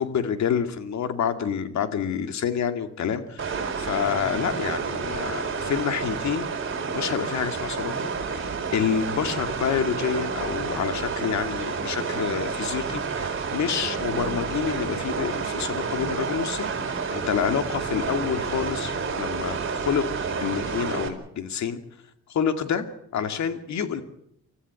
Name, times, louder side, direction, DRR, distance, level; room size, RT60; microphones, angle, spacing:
voice 1, 0.0-6.5 6.9-7.9 8.3-8.5 8.7-20.1 20.4-21.8 22.3-22.9 23.1-24.0, left 7 dB, 65° left, 8 dB, 2.4 m, -28 dB
sound 1, 3.4-21.1, right 5 dB, 45° right, 4.6 m, -30 dB
26.0 x 14.5 x 9.5 m, 0.77 s
cardioid pair, 90°, 30 cm